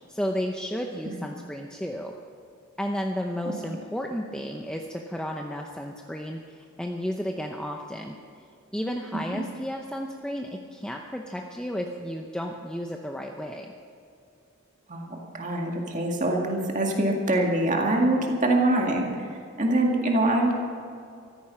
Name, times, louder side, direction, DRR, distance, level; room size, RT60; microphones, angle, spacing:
voice 1, 0.1-2.1 2.8-8.2 8.7-13.7, equal, 5° left, 1 dB, 0.7 m, -33 dB
voice 2, 14.9-19.1 19.6-20.5, right 1 dB, 35° right, 0 dB, 2.0 m, -24 dB
14.5 x 14.5 x 5.8 m, 2.5 s
head